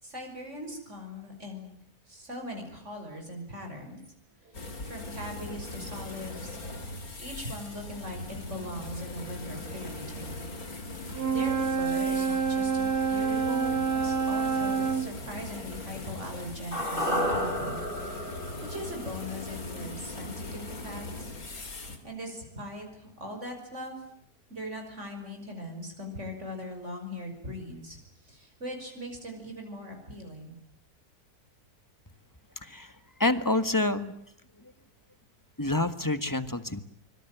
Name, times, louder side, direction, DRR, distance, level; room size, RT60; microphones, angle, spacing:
voice 1, 0.0-1.8 2.1-4.0 4.8-6.6 7.2-10.5 11.0-21.3 22.0-24.0 24.5-30.6, equal, 45° right, 3 dB, 6.3 m, -40 dB
sound 1, 4.5-22.0, left 2 dB, 65° left, 3.4 m, -40 dB
Wind instrument woodwind instrument, 11.1-15.1, right 5 dB, 75° right, 3.5 m, -27 dB
sound 2, 16.7-21.0 21.3-21.4, equal, 35° left, 4.3 m, -33 dB
voice 2, 32.6-34.1 35.6-36.8, left 2 dB, 15° left, 11 dB, 1.5 m, -28 dB
25.0 x 24.5 x 9.3 m, 0.71 s
omnidirectional pair, 1.6 m